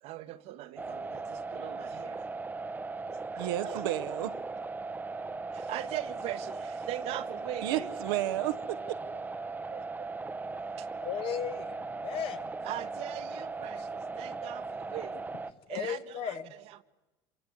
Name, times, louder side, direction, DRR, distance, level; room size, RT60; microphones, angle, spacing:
voice 1, 0.0-2.3 3.1-4.2 5.5-8.2 9.7-9.8 10.5-10.9 12.6-15.2 15.7-16.8, right 14 dB, 65° right, 1.2 m, -41 dB
sound 1, 0.8-15.5, right 3 dB, 15° right, 0.9 m, -38 dB
voice 2, 3.4-4.3 7.6-9.2, right 14 dB, 85° right, 1.1 m, -32 dB
voice 3, 11.0-12.5 15.7-16.5, left 8 dB, 55° left, 1.7 m, -35 dB
27.0 x 23.5 x 8.1 m
supercardioid pair, 100°, 11 cm